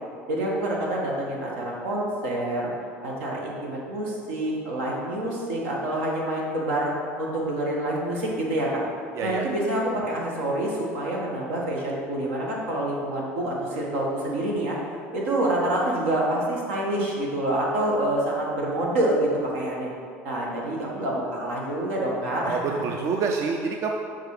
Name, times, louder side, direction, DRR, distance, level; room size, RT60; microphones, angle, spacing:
voice 1, 0.3-2.7 3.0-6.9 7.2-8.8 9.2-14.8 15.1-19.9 20.2-23.0, right 1 dB, 85° right, -3 dB, 1.6 m, -27 dB
voice 2, 9.1-9.4 22.4-23.9, right 5 dB, 45° right, 2 dB, 0.5 m, -27 dB
6.6 x 4.4 x 4.9 m, 2.4 s
supercardioid pair, 105°, 7 cm